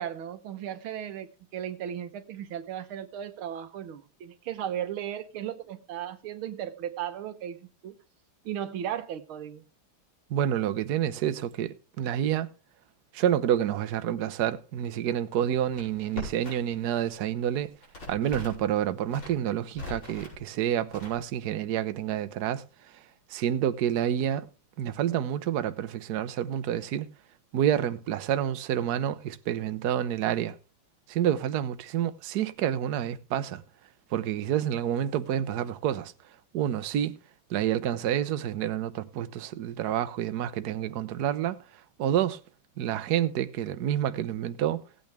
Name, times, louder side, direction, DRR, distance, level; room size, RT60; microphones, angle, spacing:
voice 1, 0.0-8.0 8.5-9.6, right 10 dB, 90° right, 1.9 m, -36 dB
voice 2, 10.3-12.5 13.1-17.7 18.1-23.0 23.3-24.5 24.8-27.1 27.5-30.6 31.1-33.6 34.1-36.1 36.5-37.2 37.5-42.4 42.8-44.8, right 10 dB, 60° right, 1.2 m, -28 dB
Crackle, 15.3-16.8 17.1-18.7 19.0-20.4 20.9-21.5, left 2 dB, 75° left, 6.6 m, -42 dB
17.0 x 8.8 x 3.4 m
omnidirectional pair, 2.2 m